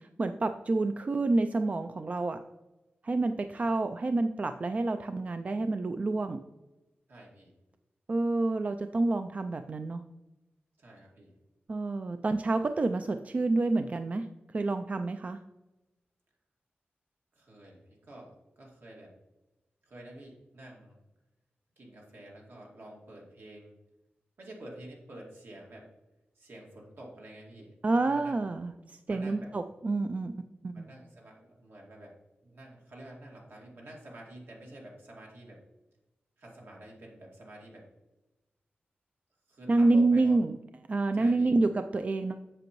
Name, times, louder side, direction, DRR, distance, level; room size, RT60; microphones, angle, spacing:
voice 1, 0.0-2.4 3.0-6.4 8.1-10.0 11.7-14.3 14.5-15.4 27.8-30.9 39.7-40.6 40.9-42.4, right 2 dB, 40° right, 8 dB, 0.3 m, -28 dB
voice 2, 7.1-7.5 10.8-11.3 17.3-19.1 19.8-21.0 21.8-23.7 24.4-25.9 26.4-27.7 28.0-28.4 29.1-29.5 30.7-32.1 32.4-35.6 36.4-37.9 39.5-40.4 41.1-41.6, right 1 dB, 70° right, -2 dB, 2.2 m, -49 dB
7.8 x 6.9 x 3.0 m, 1.0 s
wide cardioid pair, 125°, 4 cm